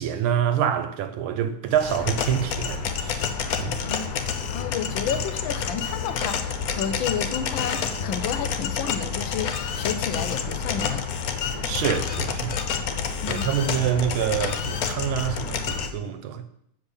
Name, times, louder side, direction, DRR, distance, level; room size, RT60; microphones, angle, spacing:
voice 1, 0.0-3.3 3.6-3.9 11.6-12.6 13.3-16.5, right 9 dB, 80° right, 1.7 m, -26 dB
sound 1, 1.7-15.9, left 6 dB, 60° left, 1.0 m, -28 dB
voice 2, 4.5-11.1 11.8-11.9 13.2-13.5, left 8 dB, 75° left, 1.3 m, -31 dB
6.8 x 5.2 x 7.2 m
omnidirectional pair, 2.3 m